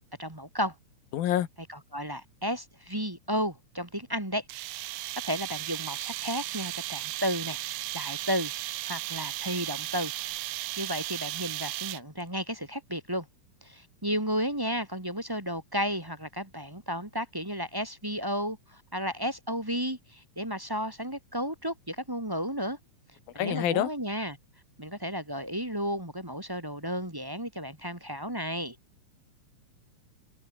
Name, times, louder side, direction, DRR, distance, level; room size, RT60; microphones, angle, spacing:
voice 1, 0.2-0.7 1.7-4.4 5.2-7.6 7.9-8.5 8.8-10.1 10.8-13.2 13.6-22.8 23.3-24.4 24.8-28.7, equal, 10° right, 1.3 m, -33 dB
voice 2, 1.1-1.5 23.4-23.9, left 12 dB, 90° left, 3.5 m, -26 dB
sound 1, 4.5-12.2, right 16 dB, 75° right, 1.8 m, -35 dB
omnidirectional pair, 4.0 m